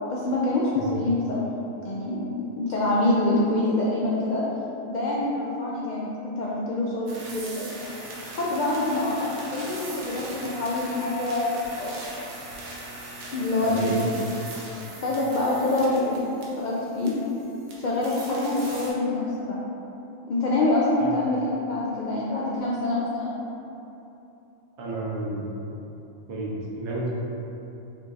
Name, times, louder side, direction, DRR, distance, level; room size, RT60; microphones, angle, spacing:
voice 1, 0.1-1.4 1.8-2.3 2.6-4.4 4.9-7.7 8.3-9.1 9.5-11.5 11.8-12.0 13.3-14.1 15.0-17.1 17.8-19.6 20.3-21.4 21.7-23.3, left 2 dB, 85° left, -6 dB, 0.4 m, -25 dB
sound 1, 7.1-18.9, right 2 dB, 85° right, 1.2 m, -40 dB
voice 2, 13.6-14.0 21.0-21.1 24.8-25.5 26.3-26.5 26.8-27.1, right 2 dB, 60° right, -5 dB, 1.0 m, -31 dB
5.4 x 3.2 x 2.4 m, 2.9 s
omnidirectional pair, 1.4 m